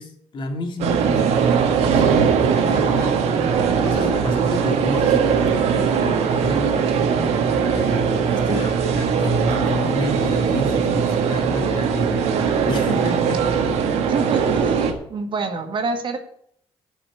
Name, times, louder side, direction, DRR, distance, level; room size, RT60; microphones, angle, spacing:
voice 1, 0.0-3.3 3.8-6.8 7.1-7.2 7.7-13.4, left 1 dB, 50° left, 3 dB, 2.6 m, -30 dB
sound 1, 0.8-14.9, right 6 dB, 85° right, 1.7 m, -20 dB
voice 2, 8.3-8.6 14.1-16.2, right 4 dB, 50° right, 5 dB, 1.8 m, -27 dB
11.5 x 5.8 x 8.1 m, 0.67 s
cardioid pair, 105°, 11 cm